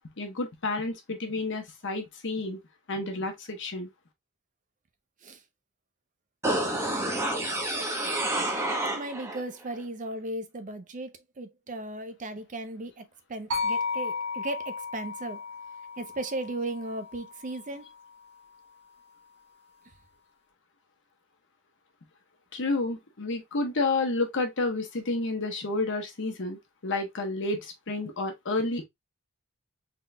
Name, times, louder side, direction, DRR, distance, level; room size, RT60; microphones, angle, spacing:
voice 1, 0.2-2.6 2.9-3.9 22.5-28.8, left 2 dB, 55° left, 1.1 m, -30 dB
sound 1, 6.4-9.4 9.8-9.9, right 1 dB, 15° right, 0.9 m, -29 dB
voice 2, 8.9-13.0 13.3-15.4 16.0-17.8, right 2 dB, 35° right, 0.5 m, -36 dB
sound 2, 13.5-17.7, left 4 dB, 75° right, 1.9 m, -34 dB
3.8 x 3.8 x 2.2 m
head